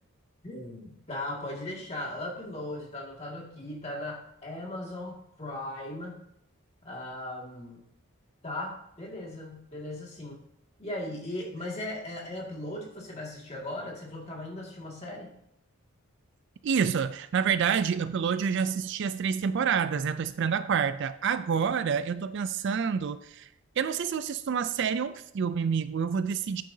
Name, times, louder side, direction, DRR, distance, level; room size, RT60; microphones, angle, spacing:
voice 1, 0.4-6.2 6.8-7.8 8.4-10.4 10.8-15.3, left 1 dB, 30° left, -2 dB, 2.1 m, -38 dB
voice 2, 16.6-23.5 23.8-26.6, right 6 dB, 55° right, 13 dB, 0.3 m, -28 dB
9.3 x 8.9 x 2.7 m, 0.77 s
head